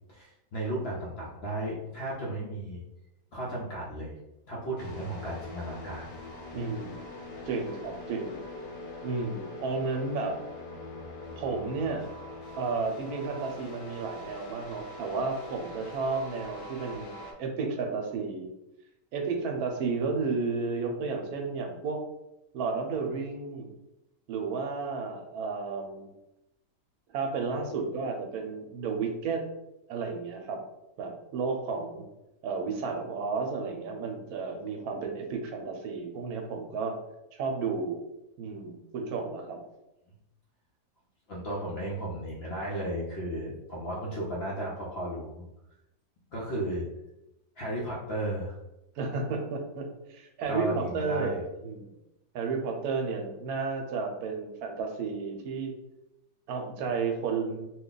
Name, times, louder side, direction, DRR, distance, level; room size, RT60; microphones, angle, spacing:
voice 1, 0.1-2.8 3.3-4.2 4.5-6.1 41.3-45.5 46.3-46.8 47.6-48.6 50.5-51.4 51.8-51.9, right 1 dB, 55° left, -4 dB, 0.7 m, -34 dB
sound 1, 4.8-17.3, left 2 dB, 80° left, 1.3 m, -43 dB
voice 2, 6.5-7.0 7.5-8.4 9.0-10.4 11.4-12.1 12.6-18.5 19.1-22.0 22.5-23.7 24.3-26.1 27.1-29.4 29.9-30.6 31.0-32.1 32.4-37.0 37.3-38.0 38.4-39.6 49.0-51.4 51.6-51.8 52.3-55.7 56.5-57.7, right 4 dB, 75° right, 3 dB, 1.1 m, -32 dB
2.8 x 2.3 x 3.7 m, 0.90 s
omnidirectional pair, 1.6 m